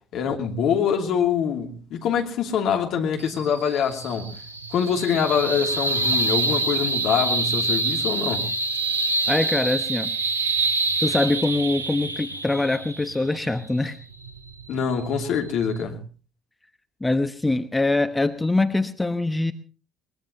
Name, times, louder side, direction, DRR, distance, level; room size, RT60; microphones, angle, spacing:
voice 1, 0.1-4.3 4.7-8.5 14.7-16.0, left 7 dB, 60° left, 3 dB, 2.8 m, -24 dB
sound 1, 3.2-15.8, right 3 dB, 90° right, 0.9 m, -27 dB
voice 2, 9.3-10.1 11.0-14.0 17.0-19.5, left 2 dB, 15° left, 11 dB, 1.0 m, -23 dB
22.0 x 21.0 x 2.9 m, 0.36 s
figure-of-eight pair, 55°, 0 cm